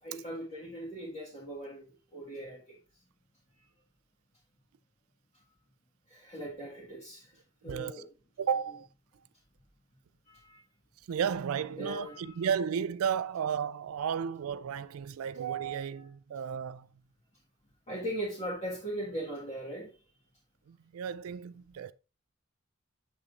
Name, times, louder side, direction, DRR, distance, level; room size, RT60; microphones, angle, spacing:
voice 1, 0.0-2.8 6.1-7.3 7.6-8.1 10.3-10.6 11.8-12.3 17.9-19.9, right 1 dB, 30° left, 1.6 m, -39 dB
voice 2, 7.7-8.0 8.4-8.9 11.1-16.9 20.7-21.9, right 7 dB, 85° right, 0.4 m, -33 dB
6.9 x 6.6 x 2.4 m
head